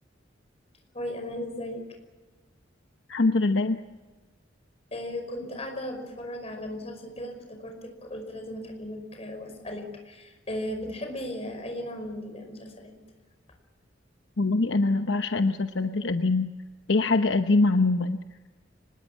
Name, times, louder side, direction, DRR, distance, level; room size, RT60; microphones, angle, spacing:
voice 1, 0.9-1.8 4.9-12.9, left 1 dB, 35° left, 5 dB, 5.4 m, -36 dB
voice 2, 3.1-3.8 14.4-16.5 16.9-18.2, left 3 dB, 65° left, 8 dB, 0.9 m, -23 dB
25.0 x 20.5 x 7.4 m, 1.3 s
head